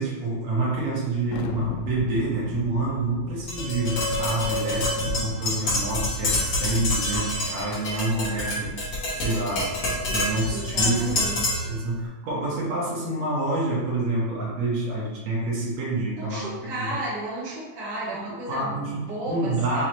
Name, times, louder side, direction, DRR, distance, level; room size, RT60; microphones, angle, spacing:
voice 1, 0.0-8.7 9.1-9.8 10.1-11.2 11.7-17.0 18.0-19.9, right 2 dB, 65° right, -6 dB, 1.9 m, -28 dB
Thunder, 1.3-6.5, left 6 dB, 90° left, 2.4 m, -38 dB
Tap, 3.5-11.7, left 1 dB, 55° left, 1.8 m, -27 dB
voice 2, 10.5-11.8 16.2-19.9, right 1 dB, 45° right, -8 dB, 1.3 m, -34 dB
6.1 x 2.9 x 2.9 m, 1.2 s
omnidirectional pair, 4.1 m